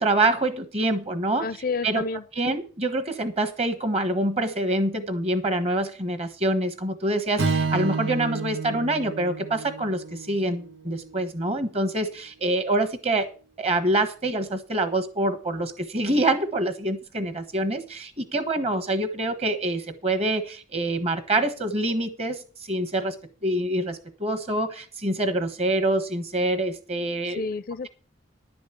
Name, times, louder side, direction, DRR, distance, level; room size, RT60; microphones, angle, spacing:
voice 1, 0.0-1.5 1.8-2.0 2.4-13.3 13.6-22.4 22.7-23.1 23.4-27.4, right 1 dB, 35° right, 1.3 m, -26 dB
voice 2, 1.4-2.6 27.2-27.9, left 4 dB, 50° left, 0.4 m, -31 dB
Strum, 7.4-11.7, right 4 dB, 80° right, 1.2 m, -30 dB
11.0 x 5.2 x 8.6 m
head